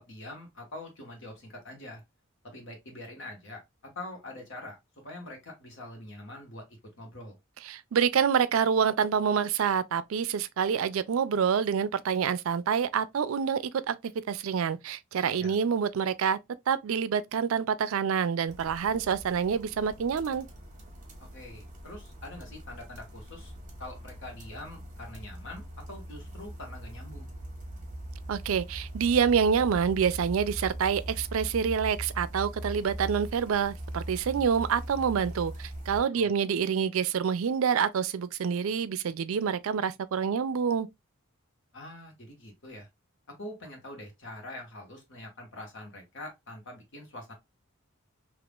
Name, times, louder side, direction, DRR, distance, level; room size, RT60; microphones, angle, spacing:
voice 1, 0.1-2.0 2.4-6.7 7.0-7.4 15.4-15.5 21.2-23.5 23.8-27.3 36.1-36.3 41.7-42.9 43.4-47.3, left 1 dB, 65° left, 1.5 m, -44 dB
voice 2, 7.6-14.0 14.3-16.4 16.7-20.5 28.3-40.9, right 7 dB, 75° right, 0.4 m, -27 dB
sound 1, 18.5-36.0, right 1 dB, 40° right, 1.1 m, -41 dB
3.5 x 2.9 x 2.4 m
head